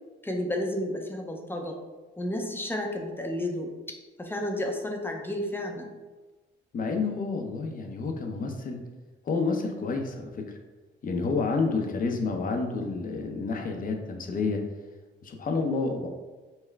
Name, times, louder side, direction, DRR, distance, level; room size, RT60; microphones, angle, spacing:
voice 1, 0.2-1.8 2.2-3.7 4.2-5.9, left 1 dB, 10° left, 2 dB, 0.7 m, -31 dB
voice 2, 6.7-8.8 9.2-10.5 11.0-14.6 15.2-16.1, left 4 dB, 45° left, 4 dB, 0.7 m, -29 dB
5.5 x 2.1 x 3.4 m, 1.2 s
cardioid pair, 90°, 20 cm